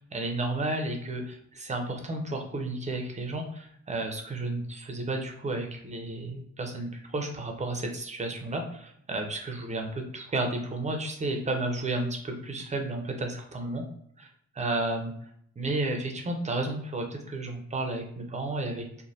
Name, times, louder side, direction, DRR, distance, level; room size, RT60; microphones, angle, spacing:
voice 1, 0.0-13.8 14.2-14.3 14.5-15.1 15.6-18.8, right 2 dB, 25° right, 3 dB, 0.6 m, -32 dB
3.0 x 2.1 x 2.7 m, 0.69 s
cardioid pair, 90°, 30 cm